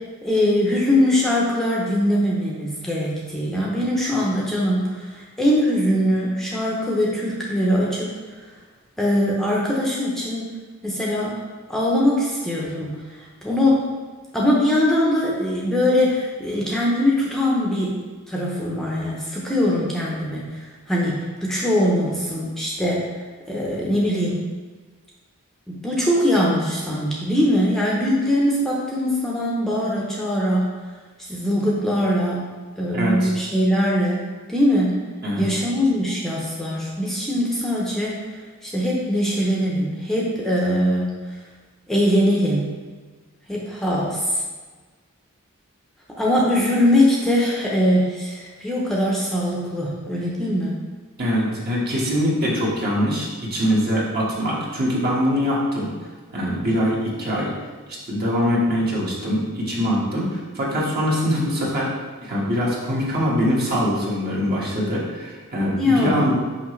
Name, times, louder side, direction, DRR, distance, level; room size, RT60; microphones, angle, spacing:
voice 1, 0.2-8.1 9.0-10.6 10.8-11.4 11.7-13.9 14.3-17.9 18.3-23.1 23.5-24.4 25.7-30.6 31.3-32.4 32.8-34.2 34.5-34.9 35.4-41.1 41.9-42.7 43.5-44.4 46.2-50.8 65.8-66.3, left 1 dB, ahead, -5 dB, 0.7 m, -22 dB
voice 2, 32.9-33.3 35.2-35.4 51.2-55.9 56.3-57.5 58.1-60.3 60.5-61.9 62.2-66.3, equal, 45° right, -5 dB, 1.6 m, -23 dB
5.9 x 5.6 x 3.2 m, 1.4 s
head